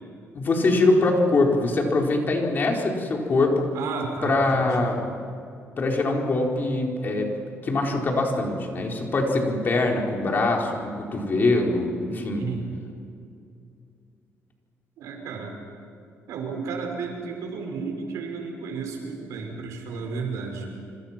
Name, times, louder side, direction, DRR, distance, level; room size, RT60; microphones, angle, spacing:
voice 1, 0.3-3.6 4.2-5.0 5.8-7.3 7.6-12.5, left 2 dB, 40° left, 0 dB, 4.4 m, -23 dB
voice 2, 3.7-4.9 12.3-12.6 15.0-15.6 16.3-20.7, right 4 dB, 85° right, 3 dB, 5.6 m, -33 dB
27.5 x 26.0 x 6.0 m, 2.5 s
cardioid pair, 120°, 5 cm